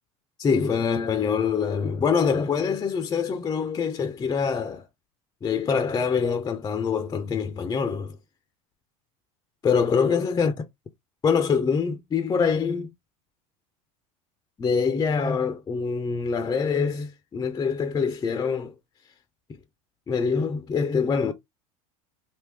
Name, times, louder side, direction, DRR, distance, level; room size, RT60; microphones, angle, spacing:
voice 1, 0.4-4.9 5.4-8.2 9.6-10.6 11.2-12.9 14.6-18.7 20.1-21.3, left 6 dB, 20° left, 0.5 m, -25 dB
3.5 x 2.6 x 3.3 m
hypercardioid pair, 100°, 18 cm